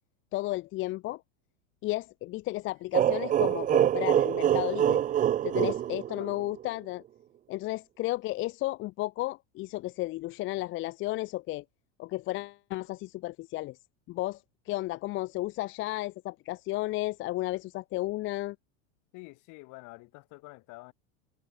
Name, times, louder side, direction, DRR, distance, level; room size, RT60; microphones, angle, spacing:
voice 1, 0.3-1.2 1.8-5.0 5.4-7.0 7.5-11.6 12.0-13.8 14.1-18.6, left 18 dB, 30° left, 0.6 m, -33 dB
sound 1, 2.9-6.6, right 11 dB, 20° right, 0.6 m, -25 dB
voice 2, 19.1-20.9, left 25 dB, 50° left, 4.8 m, -48 dB
hypercardioid pair, 115°, 38 cm